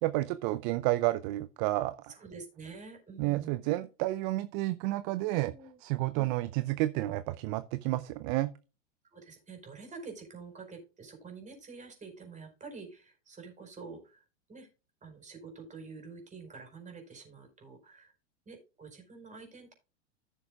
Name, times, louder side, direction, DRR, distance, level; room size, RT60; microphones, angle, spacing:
voice 1, 0.0-2.1 3.2-5.5 5.8-8.5, right 17 dB, 45° right, 0.6 m, -30 dB
voice 2, 2.1-3.5 5.3-5.8 9.1-14.2 14.5-14.7 15.0-18.1 18.4-19.7, right 4 dB, 20° right, 4.7 m, -48 dB
15.0 x 6.9 x 2.4 m
hypercardioid pair, 95°, 36 cm